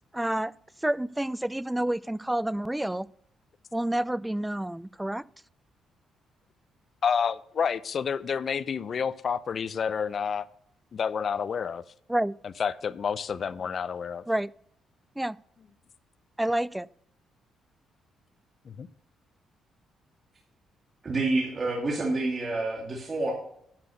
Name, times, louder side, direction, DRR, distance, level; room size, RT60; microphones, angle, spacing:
voice 1, 0.1-0.5 0.8-3.1 3.7-5.2 12.1-12.3 14.3-14.5 15.2-15.4 16.4-16.9, right 1 dB, 5° right, 0.3 m, -28 dB
voice 2, 7.0-10.5 10.9-11.8 12.4-14.2 18.7-18.9, left 6 dB, 50° left, 0.5 m, -29 dB
voice 3, 21.0-23.3, right 2 dB, 35° right, 2.3 m, -28 dB
10.5 x 6.0 x 6.6 m
cardioid pair, 90°, 0 cm